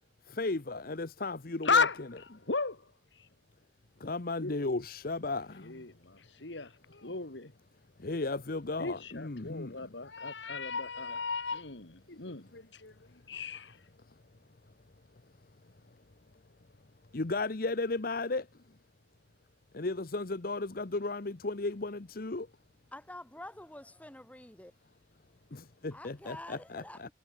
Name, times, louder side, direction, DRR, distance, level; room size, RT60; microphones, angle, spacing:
voice 1, 0.3-2.1 4.0-5.8 7.1-7.2 8.0-9.8 17.1-18.5 19.7-22.5 25.5-27.1, left 3 dB, 55° left, 1.0 m, -35 dB
voice 2, 1.6-2.0 2.5-2.8 4.4-4.6 5.6-7.5 8.8-12.9 13.3-13.7, left 4 dB, 90° left, 2.5 m, -34 dB
voice 3, 22.9-24.7 25.9-27.1, left 1 dB, 10° left, 3.7 m, -47 dB
head